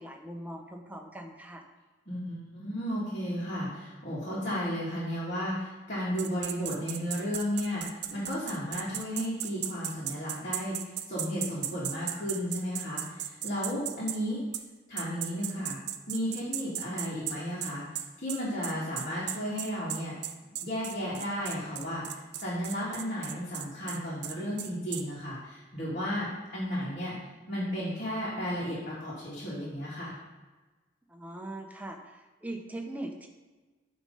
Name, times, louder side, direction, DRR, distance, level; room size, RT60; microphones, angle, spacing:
voice 1, 0.0-1.6 31.1-33.3, right 1 dB, 10° right, 3 dB, 0.6 m, -41 dB
voice 2, 2.0-14.4 14.9-15.8 16.1-17.8 18.2-20.1 20.6-27.1 27.5-30.1, equal, 45° left, -9 dB, 1.8 m, -34 dB
sound 1, 6.2-14.2 14.5-14.7 15.0-25.0, right 11 dB, 60° right, 0.4 m, -36 dB
8.8 x 3.2 x 5.3 m, 1.3 s
head